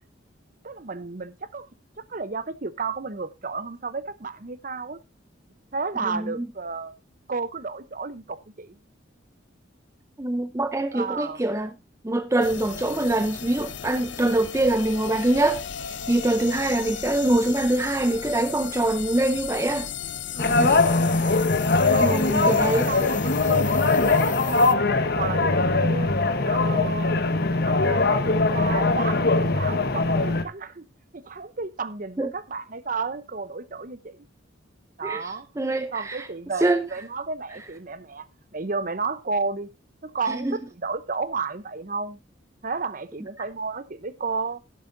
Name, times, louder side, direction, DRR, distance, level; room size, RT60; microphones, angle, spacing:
voice 1, 0.6-1.7 2.1-5.0 5.7-6.9 7.3-8.8 10.9-11.4 20.3-20.8 21.9-24.6 25.2-30.8 31.1-34.2 35.0-35.5 35.9-38.2 38.5-39.7 40.0-42.2 42.6-44.6, right 4 dB, 45° right, 0.8 m, -32 dB
voice 2, 6.1-6.5 10.2-11.7 12.0-15.6 16.1-19.9 20.6-20.9 22.0-22.9 32.2-32.3 35.0-36.3 36.6-36.8 40.3-40.5, right 1 dB, 15° right, 0.5 m, -24 dB
sound 1, 12.4-24.7, left 9 dB, 70° left, 0.7 m, -36 dB
sound 2, 20.4-30.4, left 3 dB, 50° left, 1.1 m, -21 dB
11.5 x 11.5 x 2.6 m
head